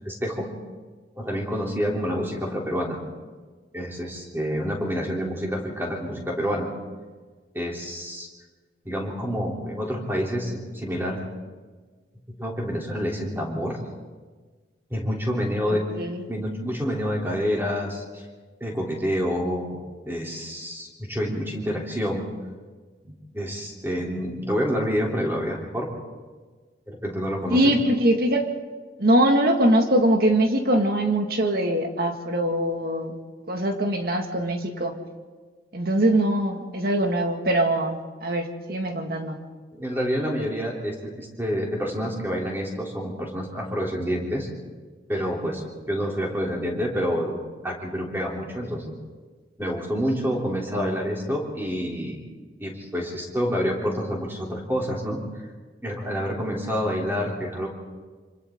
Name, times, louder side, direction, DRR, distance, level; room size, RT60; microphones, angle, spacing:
voice 1, 0.0-0.5 1.2-3.0 3.7-6.7 7.5-8.3 8.9-11.2 12.4-13.8 14.9-15.9 16.3-18.2 18.6-19.8 20.1-22.3 23.0-25.9 26.9-27.7 39.7-44.5 45.1-47.4 47.6-48.9 49.6-52.2 52.6-55.2 55.8-57.7, equal, 15° right, -2 dB, 3.4 m, -28 dB
voice 2, 15.7-16.2 27.5-28.5 29.0-33.1 33.5-34.9 35.7-39.4, right 1 dB, 55° right, 3 dB, 2.1 m, -22 dB
26.0 x 26.0 x 3.9 m, 1.4 s
head